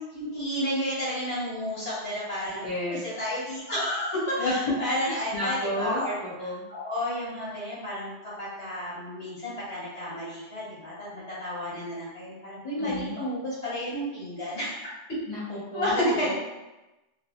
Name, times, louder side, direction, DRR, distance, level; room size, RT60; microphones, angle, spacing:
voice 1, 0.0-6.2 6.7-14.8 15.7-16.3, equal, 80° left, -8 dB, 1.6 m, -31 dB
voice 2, 2.6-3.0 4.4-4.7 5.1-6.6 12.8-13.1 15.3-16.3, left 1 dB, 35° left, -11 dB, 0.6 m, -31 dB
2.8 x 2.4 x 2.4 m, 1.0 s
omnidirectional pair, 1.2 m